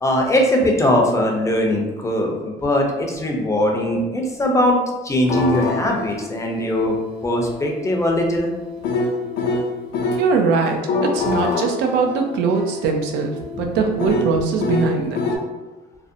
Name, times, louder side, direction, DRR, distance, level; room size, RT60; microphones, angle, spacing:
voice 1, 0.0-4.8 5.0-7.0 7.2-8.5 13.5-13.6, left 1 dB, 20° left, 1 dB, 0.4 m, -20 dB
sound 1, 5.2-10.3 10.7-15.4, left 3 dB, 85° left, 0.4 m, -26 dB
voice 2, 10.2-15.3, right 4 dB, 90° right, 3 dB, 0.4 m, -21 dB
2.5 x 2.0 x 2.5 m, 1.1 s
cardioid pair, 110°, 17 cm